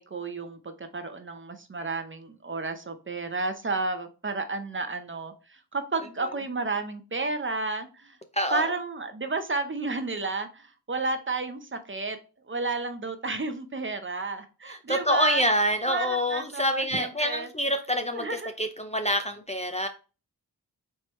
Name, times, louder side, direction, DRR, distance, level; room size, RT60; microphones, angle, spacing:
voice 1, 0.0-8.2 8.5-12.2 12.5-15.4 15.9-17.5 18.1-18.5, right 3 dB, 30° right, 0.6 m, -32 dB
voice 2, 8.3-8.7 14.7-19.9, equal, 20° left, 0.5 m, -27 dB
4.4 x 3.3 x 3.1 m
wide cardioid pair, 80°, 39 cm